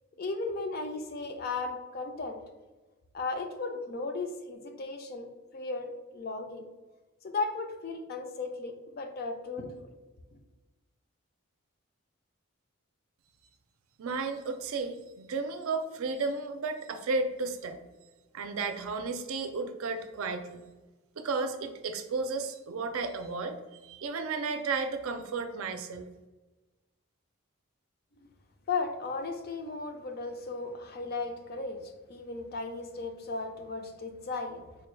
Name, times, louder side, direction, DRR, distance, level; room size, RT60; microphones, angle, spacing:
voice 1, 0.2-2.4 3.1-6.7 7.2-9.7 28.2-28.3 28.7-34.6, left 3 dB, 45° left, 5 dB, 0.4 m, -36 dB
voice 2, 14.0-17.8 18.3-20.6 21.2-23.6 23.8-26.1, right 4 dB, 80° right, 7 dB, 0.4 m, -33 dB
4.4 x 2.2 x 3.1 m, 1.2 s
head